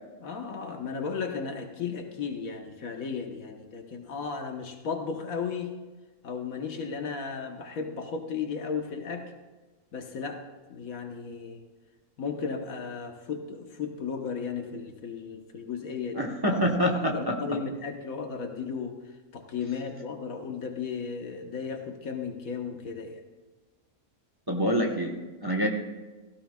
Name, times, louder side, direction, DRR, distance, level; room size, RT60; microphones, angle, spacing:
voice 1, 0.2-5.7 6.2-9.3 9.9-10.4 10.7-11.6 12.2-23.2, left 5 dB, 75° left, 4 dB, 1.5 m, -35 dB
voice 2, 16.1-17.3 24.5-25.1 25.4-25.7, equal, 20° right, 1 dB, 1.0 m, -26 dB
17.0 x 15.0 x 2.3 m, 1.2 s
omnidirectional pair, 1.5 m